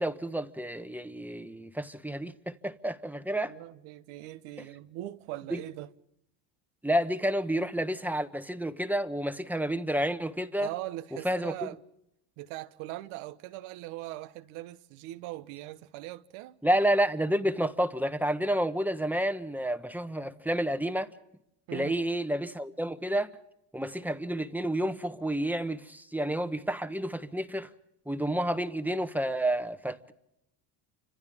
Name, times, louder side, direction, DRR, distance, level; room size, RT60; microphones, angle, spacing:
voice 1, 0.0-3.5 5.5-5.6 6.8-10.7 11.2-11.7 16.6-21.1 21.7-23.3 23.7-27.7 28.1-30.1, right 1 dB, 5° right, 1.2 m, -30 dB
voice 2, 3.5-5.9 10.6-11.8 12.4-16.6 21.7-21.9, right 16 dB, 80° right, 1.2 m, -40 dB
30.0 x 26.0 x 3.7 m
cardioid pair, 105°, 48 cm